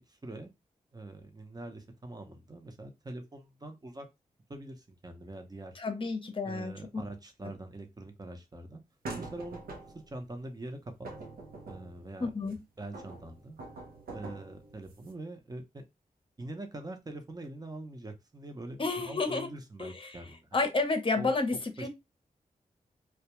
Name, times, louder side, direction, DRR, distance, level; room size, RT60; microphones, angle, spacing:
voice 1, 0.1-0.5 0.9-4.1 4.5-5.7 6.4-8.8 9.2-9.6 9.9-11.1 11.6-12.3 12.8-13.6 14.1-15.8 16.4-20.6 21.1-21.3 21.8-21.9, right 2 dB, 25° right, 0.7 m, -43 dB
voice 2, 5.8-6.8 12.2-12.6 18.8-19.5 19.8-20.2 20.5-21.9, left 3 dB, 35° left, 0.7 m, -30 dB
sound 1, 9.0-10.2 11.0-12.5 12.9-15.1, right 3 dB, 80° right, 0.6 m, -44 dB
2.3 x 2.2 x 2.9 m
cardioid pair, 65°, 15 cm